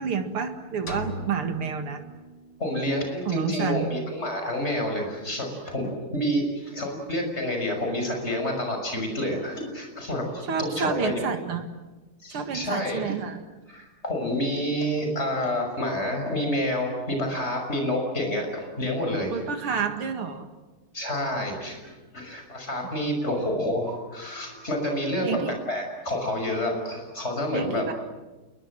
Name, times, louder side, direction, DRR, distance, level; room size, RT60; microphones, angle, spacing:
voice 1, 0.0-2.0 3.3-4.0 10.5-11.7 12.3-13.4 19.3-20.5 25.2-25.6 27.5-27.9, right 6 dB, 85° right, 6 dB, 2.9 m, -29 dB
sound 1, 0.9-2.8, left 2 dB, 60° left, 2.9 m, -39 dB
voice 2, 2.6-11.3 12.2-13.1 13.7-19.4 20.9-25.4 25.7-27.8, left 1 dB, 30° left, 3 dB, 6.4 m, -28 dB
28.5 x 22.5 x 7.7 m, 1.2 s
omnidirectional pair, 2.3 m